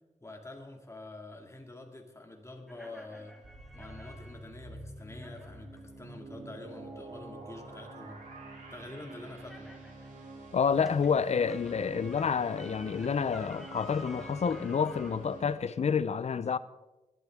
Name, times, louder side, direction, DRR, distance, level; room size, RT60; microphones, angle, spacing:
voice 1, 0.2-3.3 3.7-8.2 8.7-9.7, left 2 dB, 20° left, 2.3 m, -47 dB
sound 1, 2.7-10.4 10.7-15.2, left 1 dB, ahead, 1.9 m, -52 dB
sound 2, 3.4-15.6, right 2 dB, 80° right, 3.5 m, -47 dB
voice 2, 10.5-16.6, left 6 dB, 55° left, 0.6 m, -29 dB
19.5 x 12.0 x 3.6 m
wide cardioid pair, 100°, 13 cm